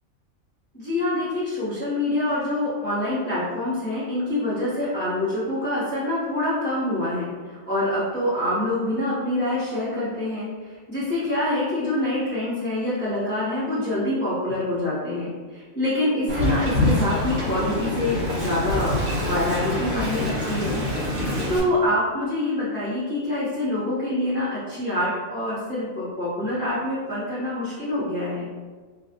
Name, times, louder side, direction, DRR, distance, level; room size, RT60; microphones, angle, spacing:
voice 1, 0.7-20.8 21.2-28.5, left 1 dB, 10° left, -11 dB, 0.8 m, -26 dB
Wind, 16.3-21.6, left 1 dB, 60° right, 1.6 m, -25 dB
5.0 x 2.3 x 2.6 m, 1.4 s
omnidirectional pair, 1.4 m